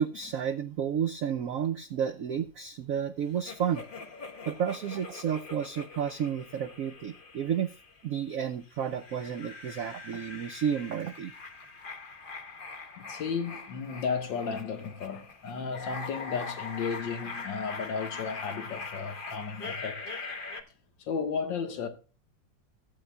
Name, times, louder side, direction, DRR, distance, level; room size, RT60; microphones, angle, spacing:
voice 1, 0.0-3.8 4.5-7.7 8.0-11.3, right 8 dB, 65° right, 0.8 m, -31 dB
sound 1, 3.5-8.2 8.7-20.6, left 4 dB, 35° left, 0.9 m, -42 dB
voice 2, 13.0-20.1 21.0-21.9, left 5 dB, 80° left, 2.1 m, -34 dB
15.0 x 8.6 x 2.2 m
omnidirectional pair, 2.0 m